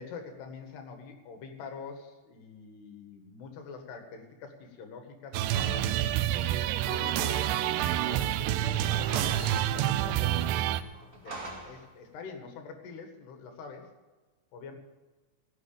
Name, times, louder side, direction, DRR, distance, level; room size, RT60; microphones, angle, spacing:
voice 1, 0.0-6.0 6.9-10.4 11.2-13.9 14.5-14.8, left 5 dB, 70° left, 5 dB, 3.8 m, -45 dB
sound 1, 5.3-10.8, right 13 dB, 85° right, 2.6 m, -28 dB
sound 2, 5.5-8.3 8.5-8.6 8.8-9.9 10.5-11.9, right 2 dB, 30° right, 1.6 m, -43 dB
17.5 x 8.1 x 6.8 m, 1.3 s
omnidirectional pair, 5.1 m